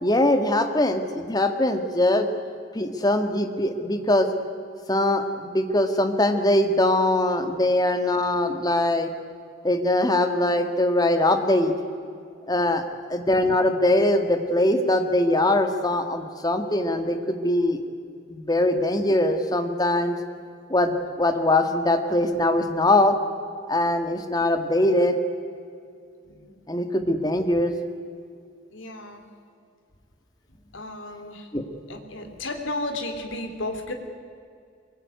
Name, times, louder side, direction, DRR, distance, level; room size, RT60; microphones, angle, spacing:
voice 1, 0.0-2.3 2.7-4.3 4.9-9.1 9.6-11.7 12.5-12.8 13.1-17.8 18.3-20.2 20.7-23.2 23.7-25.2 26.7-27.7 31.5-31.6, left 1 dB, 20° left, 7 dB, 1.8 m, -22 dB
voice 2, 26.2-26.6 28.7-29.2 30.7-31.5 31.9-33.9, left 2 dB, 80° left, 6 dB, 3.2 m, -33 dB
23.5 x 22.0 x 9.6 m, 2.3 s
head